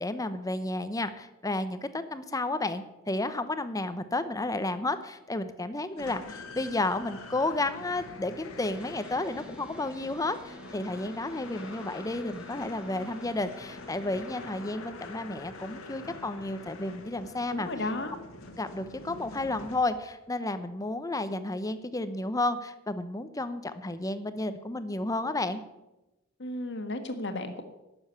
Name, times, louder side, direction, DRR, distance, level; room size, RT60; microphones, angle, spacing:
voice 1, 0.0-17.7 18.6-25.6, left 2 dB, 15° left, 11 dB, 0.7 m, -32 dB
sound 1, 6.0-20.2, left 3 dB, 75° left, 1.6 m, -45 dB
sound 2, 8.7-14.6, equal, 5° right, 1.2 m, -51 dB
voice 2, 17.5-18.2 26.4-27.6, left 2 dB, 55° left, 6 dB, 1.5 m, -34 dB
12.0 x 7.1 x 8.3 m, 0.97 s
head